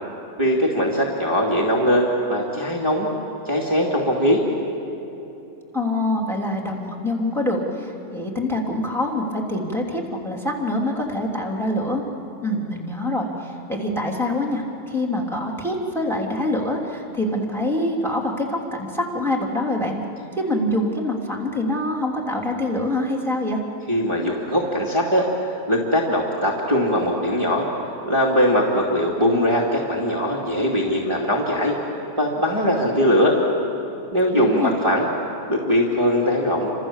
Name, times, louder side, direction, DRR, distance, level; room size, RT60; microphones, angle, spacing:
voice 1, 0.4-3.1 3.4-4.4 23.9-27.7 28.0-31.8 32.2-33.4 34.1-35.1 35.5-36.7, equal, 20° right, -4 dB, 2.4 m, -21 dB
voice 2, 5.7-12.0 12.4-20.0 20.4-23.6 34.3-34.7, left 1 dB, ahead, 0 dB, 3.1 m, -25 dB
29.5 x 26.5 x 7.4 m, 2.9 s
omnidirectional pair, 1.6 m